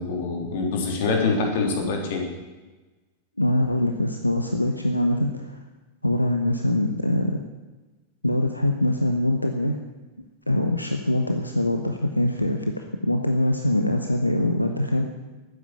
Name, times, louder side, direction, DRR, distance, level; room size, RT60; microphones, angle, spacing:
voice 1, 0.0-2.3, left 4 dB, 55° left, 2 dB, 3.4 m, -25 dB
voice 2, 3.4-5.6 6.0-7.4 8.2-9.8 10.5-15.1, left 1 dB, 85° left, 5 dB, 1.0 m, -23 dB
13.5 x 9.3 x 8.9 m, 1.2 s
figure-of-eight pair, 90°, 0 cm